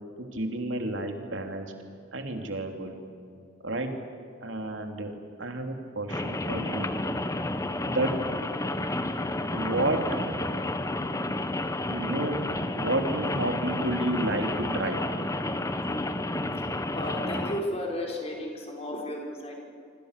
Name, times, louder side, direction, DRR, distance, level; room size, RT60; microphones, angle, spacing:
voice 1, 0.2-1.7 2.1-3.0 3.6-4.0 4.4-6.9 7.9-8.2 9.5-10.0 11.9-12.4 12.8-15.0, right 1 dB, 75° right, 4 dB, 3.2 m, -30 dB
Rain, 6.1-17.6, left 2 dB, 15° left, 1.1 m, -31 dB
voice 2, 16.6-19.6, left 1 dB, 35° left, -1 dB, 5.5 m, -34 dB
26.5 x 26.0 x 6.8 m, 2.4 s
head